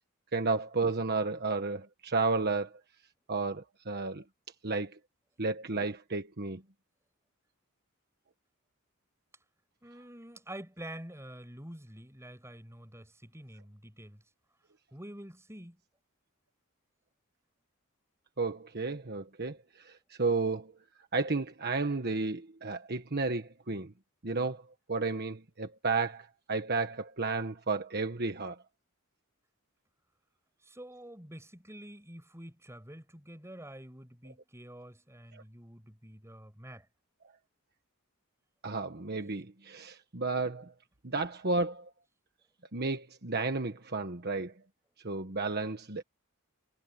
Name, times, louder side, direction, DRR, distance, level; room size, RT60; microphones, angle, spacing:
voice 1, 0.3-2.8 3.3-4.2 4.6-5.0 5.4-6.6 18.4-20.7 21.1-23.9 24.2-24.6 24.9-28.6 35.3-35.4 38.6-40.7 41.0-41.9 42.7-44.5 45.0-46.0, right 3 dB, 50° right, 1.4 m, -32 dB
voice 2, 9.8-14.2 14.9-15.8 30.6-36.9, right 1 dB, 15° right, 7.4 m, -47 dB
head